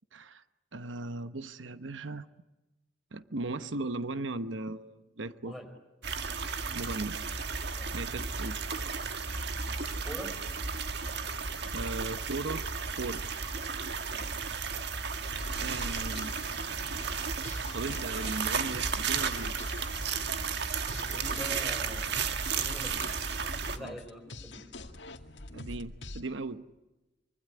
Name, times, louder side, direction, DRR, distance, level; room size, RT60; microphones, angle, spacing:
voice 1, 0.1-0.4 0.7-2.3 3.1-5.5 6.7-7.2 7.9-8.7 9.4-9.5 11.7-12.7 13.0-13.3 15.6-16.3 17.7-19.5 23.7-24.0 25.5-26.6, right 2 dB, 85° right, 12 dB, 1.0 m, -37 dB
sound 1, 6.0-23.8, right 5 dB, 60° right, 1.7 m, -34 dB
voice 2, 10.0-10.4 14.1-14.5 20.9-22.1 22.5-23.1 23.7-24.7, equal, ahead, 6 dB, 5.0 m, -44 dB
sound 2, 15.3-26.2, left 2 dB, 65° left, 2.1 m, -44 dB
25.0 x 24.0 x 9.8 m, 1.1 s
head